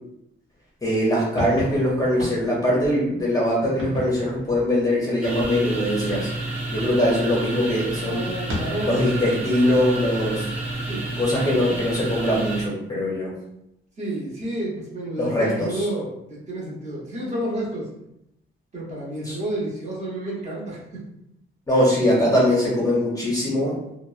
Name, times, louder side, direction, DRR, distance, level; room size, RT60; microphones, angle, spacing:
voice 1, 0.8-6.3 6.7-8.2 8.9-10.5 11.2-13.3 15.2-15.9 19.2-19.4 21.7-23.8, left 1 dB, 15° left, -5 dB, 0.6 m, -22 dB
sound 1, 1.3-6.1 8.4-9.3, left 1 dB, 75° right, 0.9 m, -35 dB
sound 2, 5.2-12.6, right 2 dB, 10° right, 0.9 m, -30 dB
voice 2, 8.0-9.0 10.9-11.1 14.0-17.9 18.7-21.0, right 1 dB, 30° right, -6 dB, 0.8 m, -30 dB
2.9 x 2.0 x 2.4 m, 0.82 s
wide cardioid pair, 160°, 21 cm